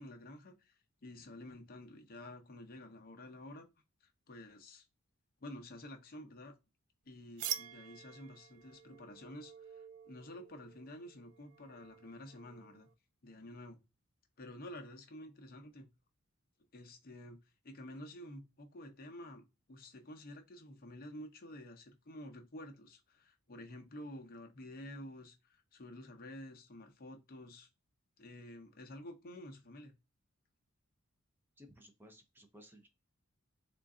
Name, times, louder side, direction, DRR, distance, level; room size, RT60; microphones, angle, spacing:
voice 1, 0.0-3.7 4.0-4.8 5.4-6.5 7.1-12.9 13.2-13.8 14.4-15.9 16.7-17.4 17.6-27.7 28.2-29.9, left 1 dB, 45° left, 0.6 m, -50 dB
sound 1, 7.4-12.9, right 10 dB, 70° right, 0.4 m, -47 dB
voice 2, 31.6-32.9, equal, 10° right, 0.5 m, -58 dB
3.8 x 2.4 x 3.6 m
head